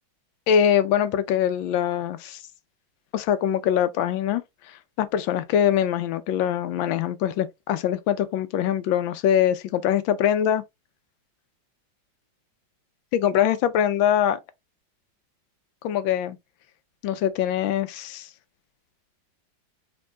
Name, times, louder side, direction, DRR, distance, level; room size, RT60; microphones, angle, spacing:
voice 1, 0.5-2.4 3.1-4.4 4.7-10.6 13.1-14.4 15.8-16.4 17.0-18.3, left 9 dB, 85° left, 1.4 m, -23 dB
5.1 x 4.5 x 2.2 m
omnidirectional pair, 2.1 m